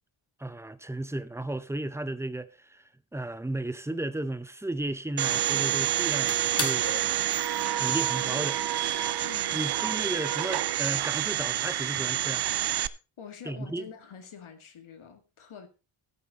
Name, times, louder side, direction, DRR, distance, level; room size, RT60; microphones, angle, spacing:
voice 1, 0.4-2.8 3.1-7.2 7.8-8.6 9.5-12.4 13.5-13.9, right 1 dB, 5° right, 0.6 m, -34 dB
Domestic sounds home sounds, 5.2-12.9, right 11 dB, 55° right, 0.6 m, -28 dB
sound 1, 6.1-8.8 9.3-9.4 9.7-11.4 12.0-12.3, left 3 dB, 25° left, 2.4 m, -39 dB
voice 2, 9.2-10.0 13.2-15.7, left 7 dB, 70° left, 2.0 m, -47 dB
14.5 x 8.5 x 4.1 m
wide cardioid pair, 160°, 50 cm